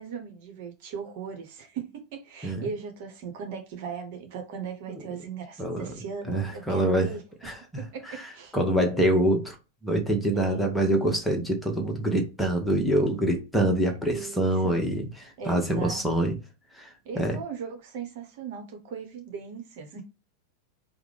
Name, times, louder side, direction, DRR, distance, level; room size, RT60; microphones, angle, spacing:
voice 1, 0.0-7.2 7.8-8.5 10.3-10.6 14.0-14.8 15.4-16.3 17.0-20.0, right 6 dB, 50° right, 0.9 m, -38 dB
voice 2, 5.6-5.9 6.3-7.1 7.4-7.8 8.1-9.6 9.8-16.3 16.7-17.4, right 1 dB, 5° left, 1.1 m, -25 dB
4.9 x 2.1 x 3.4 m
figure-of-eight pair, 90°, 0 cm